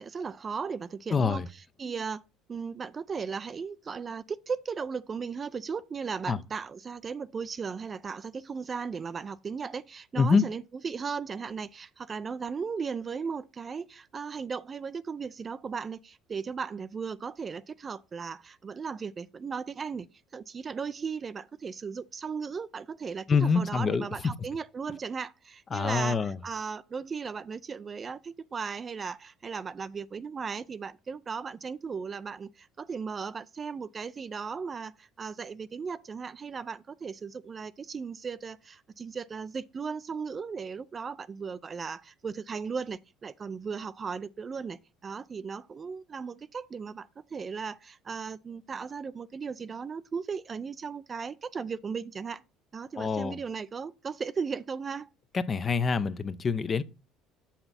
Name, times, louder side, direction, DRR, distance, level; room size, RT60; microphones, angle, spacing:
voice 1, 0.0-1.4 1.8-2.2 2.5-52.4 52.7-55.1, right 5 dB, 35° right, 0.4 m, -36 dB
voice 2, 1.1-1.5 6.3-6.4 10.2-10.4 23.3-24.3 25.7-26.4 53.0-53.4 55.3-56.8, left 5 dB, 35° left, 0.6 m, -26 dB
6.7 x 5.9 x 4.2 m
hypercardioid pair, 70°, 0 cm